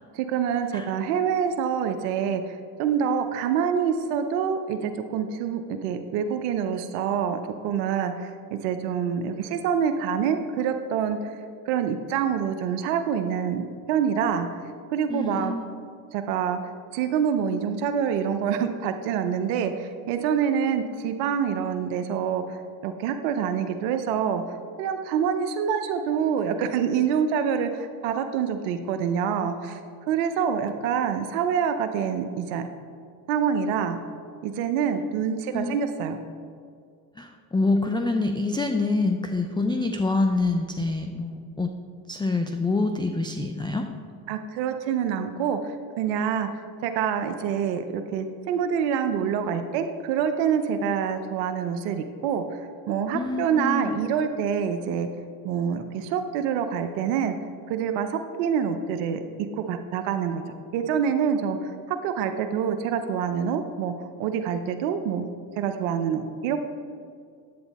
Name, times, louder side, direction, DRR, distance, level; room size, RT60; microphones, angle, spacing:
voice 1, 0.1-11.4 11.7-14.5 14.9-15.5 16.1-16.6 16.9-29.8 30.1-32.6 33.3-34.0 34.4-36.2 44.3-46.5 46.8-52.4 52.9-55.1 55.4-57.3 57.7-59.2 59.6-60.4 60.7-63.9 64.2-65.3 65.6-66.6, right 7 dB, 85° right, 7 dB, 0.8 m, -26 dB
voice 2, 15.1-15.7 35.5-36.0 37.2-41.7 42.1-43.9 53.1-54.0, left 3 dB, 10° left, 5 dB, 0.4 m, -26 dB
9.4 x 7.9 x 4.1 m, 2.2 s
supercardioid pair, 85°, 49 cm